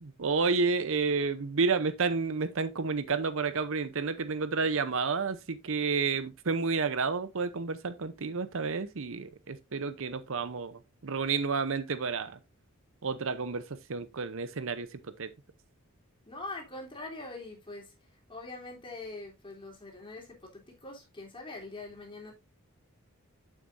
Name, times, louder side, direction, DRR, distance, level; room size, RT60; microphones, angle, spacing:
voice 1, 0.0-12.4 13.0-15.3, right 4 dB, 65° right, 0.8 m, -30 dB
voice 2, 16.3-17.9 18.3-22.3, left 2 dB, 25° left, 3.4 m, -43 dB
9.2 x 7.4 x 2.6 m
head